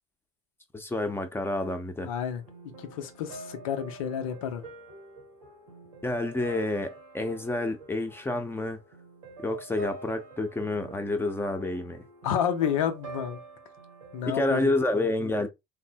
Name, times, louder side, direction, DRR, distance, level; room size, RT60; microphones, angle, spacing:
voice 1, 0.7-2.1 6.0-8.8 9.4-12.0 14.2-15.5, left 2 dB, 15° left, 0.7 m, -29 dB
voice 2, 2.0-2.4 2.9-4.6 12.2-13.4 14.1-14.7, left 8 dB, 75° left, 0.6 m, -30 dB
sound 1, 2.3-14.5, right 2 dB, 90° right, 1.1 m, -46 dB
3.3 x 2.0 x 2.7 m
hypercardioid pair, 65°, 17 cm